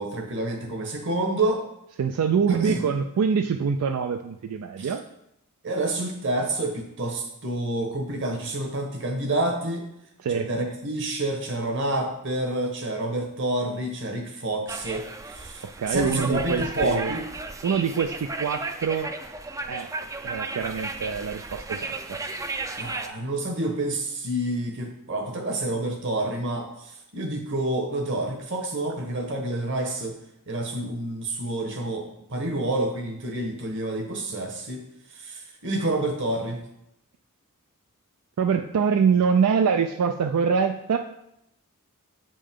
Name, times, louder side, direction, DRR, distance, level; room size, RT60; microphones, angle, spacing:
voice 1, 0.0-1.6 2.5-2.8 4.8-4.9 5.6-9.8 10.3-17.3 22.8-30.1 30.5-32.0 32.3-34.8 35.1-36.6, right 1 dB, 55° right, 3 dB, 1.2 m, -28 dB
voice 2, 2.0-5.0 10.2-10.5 15.6-17.2 17.6-19.1 19.7-19.9 20.2-22.2 38.4-41.0, right 6 dB, 85° right, 6 dB, 0.4 m, -24 dB
sound 1, 14.7-23.1, right 3 dB, 15° right, 0.3 m, -34 dB
7.6 x 5.3 x 3.6 m, 0.82 s
head